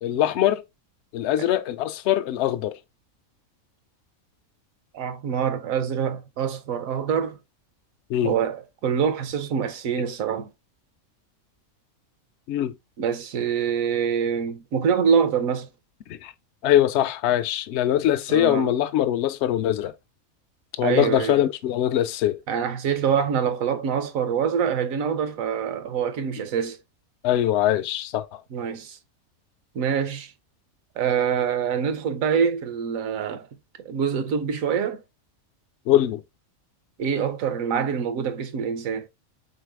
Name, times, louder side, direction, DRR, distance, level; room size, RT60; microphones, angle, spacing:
voice 1, 0.0-0.6 1.1-2.8 8.1-8.3 12.5-12.7 16.1-16.3 16.6-19.9 20.8-22.4 27.2-28.3 35.9-36.2, left 12 dB, 65° left, 0.7 m, -22 dB
voice 2, 4.9-7.4 8.2-10.5 13.0-15.7 18.3-18.7 20.8-21.4 22.5-26.8 28.5-29.0 29.7-30.3 31.0-33.5 33.8-35.0 37.0-39.1, right 7 dB, 75° right, 1.1 m, -25 dB
4.1 x 3.8 x 3.3 m
omnidirectional pair, 1.5 m